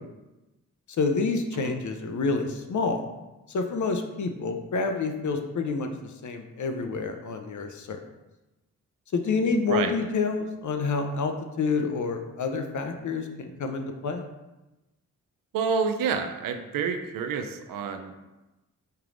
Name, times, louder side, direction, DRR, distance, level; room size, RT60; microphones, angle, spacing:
voice 1, 1.0-3.0 3.5-5.9 6.2-8.0 9.1-14.2, left 4 dB, 50° left, 5 dB, 0.6 m, -28 dB
voice 2, 15.5-18.1, right 6 dB, 60° right, 6 dB, 0.5 m, -28 dB
4.6 x 3.3 x 2.5 m, 1.0 s
supercardioid pair, 40°, 38 cm